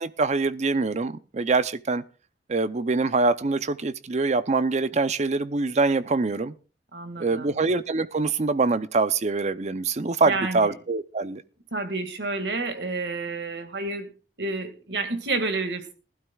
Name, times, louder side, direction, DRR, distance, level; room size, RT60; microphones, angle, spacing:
voice 1, 0.0-2.0 2.5-6.5 7.2-11.4, right 3 dB, 40° right, 0.6 m, -24 dB
voice 2, 6.9-7.6 10.3-10.8 11.7-14.1 14.4-15.9, right 3 dB, 80° right, 2.0 m, -30 dB
19.5 x 12.0 x 2.3 m
head